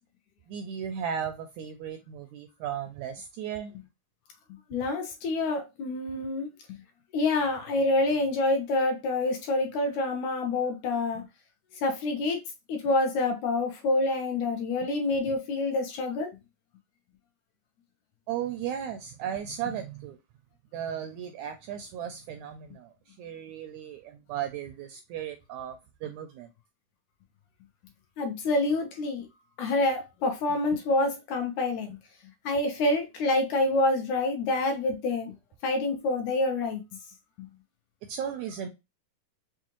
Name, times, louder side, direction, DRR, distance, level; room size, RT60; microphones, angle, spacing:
voice 1, 0.5-3.7 18.3-20.2 20.7-26.5 38.1-38.7, right 9 dB, 80° right, 1.7 m, -36 dB
voice 2, 4.7-6.5 7.1-11.2 11.8-12.4 12.7-16.3 28.2-29.3 29.6-32.0 32.5-35.3 35.6-36.8 37.4-37.5, left 2 dB, 75° left, 2.0 m, -27 dB
5.7 x 2.4 x 2.9 m
omnidirectional pair, 3.8 m